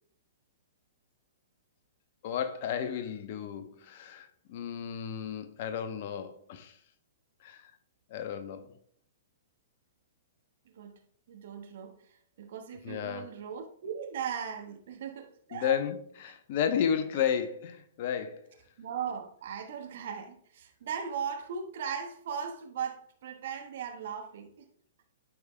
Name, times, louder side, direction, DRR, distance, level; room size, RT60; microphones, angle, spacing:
voice 1, 2.2-6.8 7.4-7.7 8.1-8.8 12.8-13.3 15.5-18.5, left 8 dB, 50° left, 0.8 m, -33 dB
voice 2, 11.3-15.7 18.8-24.6, right 7 dB, 55° right, 1.2 m, -38 dB
12.5 x 5.0 x 2.2 m
figure-of-eight pair, 110°, 0 cm